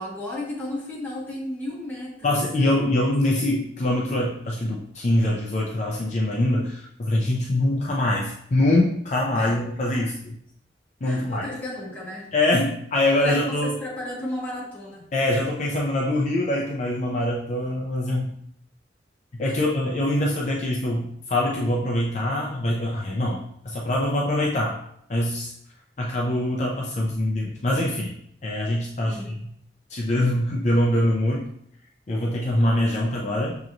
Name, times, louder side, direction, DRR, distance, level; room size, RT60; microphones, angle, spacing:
voice 1, 0.0-3.0 3.3-3.5 9.3-9.6 9.9-10.1 11.0-12.3 13.2-15.1 19.4-19.6 29.0-29.3, left 1 dB, 10° left, -7 dB, 1.4 m, -34 dB
voice 2, 2.2-10.1 11.0-11.4 12.3-13.7 15.1-18.3 19.3-23.4 23.6-24.8 25.1-25.5 26.0-28.1 28.4-29.2 29.9-31.5 32.1-33.6, left 1 dB, 40° left, -2 dB, 0.5 m, -24 dB
6.1 x 2.9 x 2.5 m, 0.70 s
head